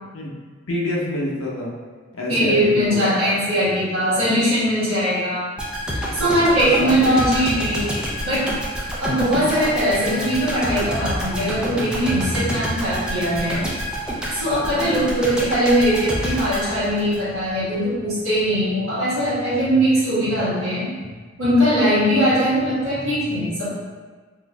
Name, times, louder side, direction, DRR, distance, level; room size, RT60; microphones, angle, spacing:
voice 1, 0.7-1.7 2.1-3.3 6.1-7.5 14.7-15.0, left 1 dB, 70° left, -3 dB, 0.7 m, -28 dB
voice 2, 2.3-5.5 5.9-8.6 9.0-13.7 14.3-20.9 21.4-23.7, equal, 70° right, -13 dB, 1.3 m, -20 dB
sound 1, 5.6-17.6 17.9-18.1, equal, 5° right, 0.4 m, -28 dB
3.7 x 2.6 x 2.3 m, 1.4 s
head